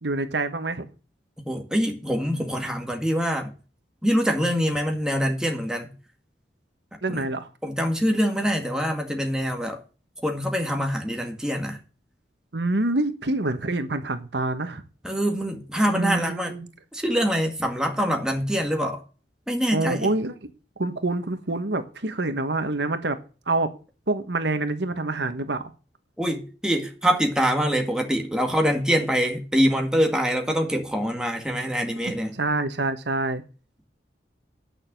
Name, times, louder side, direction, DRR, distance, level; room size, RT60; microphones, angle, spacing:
voice 1, 0.0-0.9 7.0-7.5 12.5-14.8 15.9-16.7 19.7-20.5 20.8-23.2 23.5-23.7 24.1-25.6 32.1-33.4, right 2 dB, 80° right, 1.3 m, -26 dB
voice 2, 1.5-3.5 4.0-5.9 7.1-7.2 7.6-9.8 10.2-11.8 15.0-16.5 16.9-19.0 19.5-20.1 26.2-32.4, equal, 5° right, 1.9 m, -24 dB
9.3 x 6.5 x 7.6 m
head